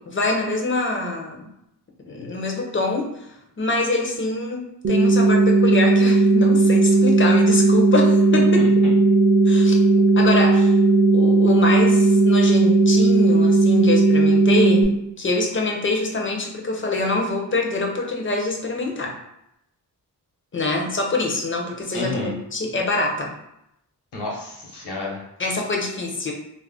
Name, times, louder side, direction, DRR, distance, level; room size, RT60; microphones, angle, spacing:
voice 1, 0.1-1.4 2.1-3.3 3.6-8.6 9.5-9.8 10.2-10.7 11.1-19.1 20.5-23.3 25.4-26.3, left 2 dB, 30° left, 0 dB, 0.5 m, -25 dB
sound 1, 4.8-14.8, right 3 dB, 35° right, 0.4 m, -16 dB
voice 2, 8.3-8.9 21.9-22.3 24.1-25.2, left 2 dB, 80° left, -3 dB, 0.9 m, -30 dB
2.4 x 2.1 x 3.5 m, 0.82 s
wide cardioid pair, 110°, 40 cm